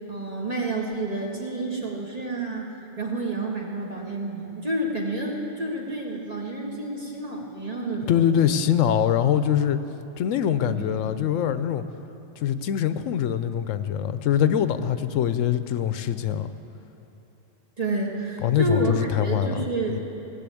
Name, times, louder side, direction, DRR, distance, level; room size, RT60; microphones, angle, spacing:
voice 1, 0.1-8.6 10.6-11.0 17.8-20.0, right 2 dB, 30° right, -2 dB, 1.7 m, -29 dB
voice 2, 8.1-9.8 10.2-11.8 12.4-16.5 18.4-20.0, left 9 dB, 90° left, 11 dB, 1.0 m, -23 dB
17.0 x 7.3 x 8.5 m, 2.9 s
omnidirectional pair, 1.3 m